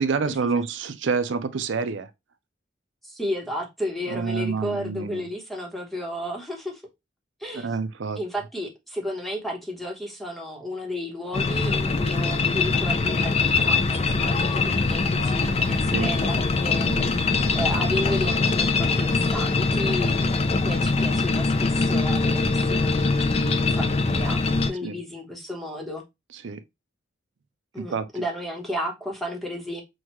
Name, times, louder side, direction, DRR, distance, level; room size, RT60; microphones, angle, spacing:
voice 1, 0.0-2.1 4.1-5.2 7.5-8.2 15.9-16.1 16.9-17.0 24.8-24.9 26.4-26.6 27.8-28.0, right 5 dB, 65° right, 0.5 m, -27 dB
voice 2, 3.0-6.8 7.4-7.8 8.2-26.0 27.7-29.8, left 1 dB, ahead, 1.0 m, -33 dB
sound 1, 11.3-24.7, left 3 dB, 30° left, 0.4 m, -23 dB
6.1 x 2.4 x 3.0 m
head